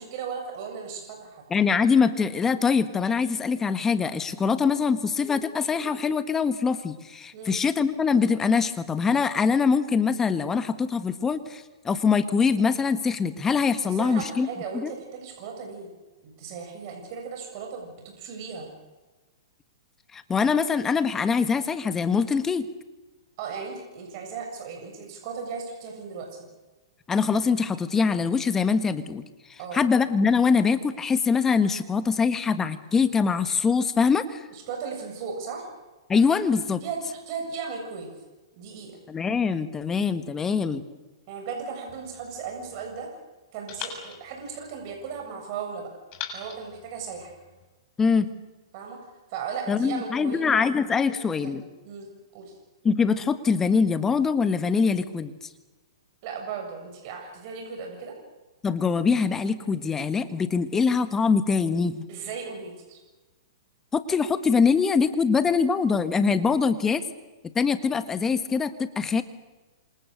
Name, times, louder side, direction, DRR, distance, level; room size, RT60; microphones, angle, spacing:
voice 1, 0.0-1.4 7.3-7.6 13.8-15.9 16.2-18.7 23.4-26.3 29.6-29.8 34.5-35.7 36.8-38.1 38.5-39.0 41.3-43.1 43.5-45.9 46.3-47.3 48.7-49.0 49.3-50.4 51.3-51.6 51.8-52.1 52.3-52.5 56.2-58.2 62.1-63.0, right 6 dB, 45° right, 2 dB, 7.3 m, -36 dB
voice 2, 1.5-14.5 14.7-14.9 20.1-22.7 27.1-29.2 29.7-34.4 36.1-36.8 39.1-40.8 48.0-48.3 49.7-51.6 52.8-55.3 58.6-62.1 63.9-67.1 67.5-69.2, left 5 dB, 15° left, 11 dB, 1.6 m, -23 dB
sound 1, 41.9-43.1 43.7-45.3 46.1-47.7, left 7 dB, 35° left, 7.0 m, -42 dB
28.0 x 27.0 x 6.6 m, 1.2 s
hypercardioid pair, 135°, 3 cm